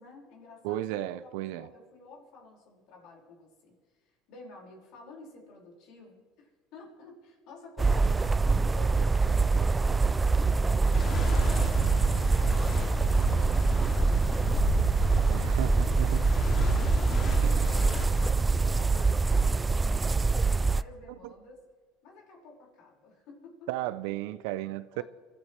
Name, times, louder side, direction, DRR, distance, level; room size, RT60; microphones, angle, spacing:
voice 1, 0.0-12.0 12.4-14.7 15.0-21.6 22.0-23.7 24.9-25.0, left 3 dB, 70° left, 5.2 m, -52 dB
voice 2, 0.6-1.7 15.3-16.2 17.4-17.8 23.7-25.0, right 15 dB, 80° right, 0.5 m, -34 dB
sound 1, 7.8-20.8, right 4 dB, 20° right, 0.4 m, -25 dB
sound 2, 10.9-18.3, left 3 dB, 45° left, 2.4 m, -34 dB
27.0 x 12.5 x 3.2 m
supercardioid pair, 100°, 0 cm